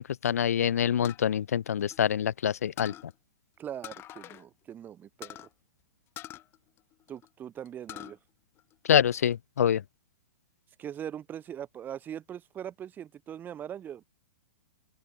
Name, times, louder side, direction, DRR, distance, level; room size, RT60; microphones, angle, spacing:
voice 1, 0.0-2.9 8.9-9.8, left 9 dB, 70° left, 1.0 m, -26 dB
sound 1, 1.0-2.4 2.8-3.1 3.8-4.5 4.7-4.8 5.2-5.5 6.2-7.3 7.7-8.2 8.6-9.3, left 14 dB, 30° left, 1.2 m, -45 dB
voice 2, 3.6-5.5 7.1-8.2 10.8-14.0, right 10 dB, 20° right, 2.5 m, -41 dB
open air
hypercardioid pair, 120°, 8 cm